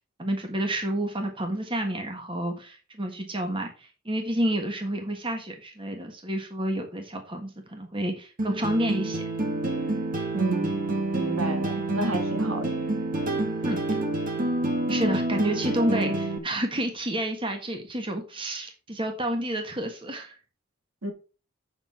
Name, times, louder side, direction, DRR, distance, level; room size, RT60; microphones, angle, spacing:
voice 1, 0.2-9.2 13.6-13.8 14.9-20.4, right 1 dB, 25° right, 1.4 m, -29 dB
sound 1, 8.4-16.4, right 2 dB, 40° right, 1.6 m, -28 dB
voice 2, 10.3-10.8 11.2-12.7 21.0-21.1, right 2 dB, 70° right, 1.9 m, -31 dB
8.1 x 5.9 x 4.8 m
head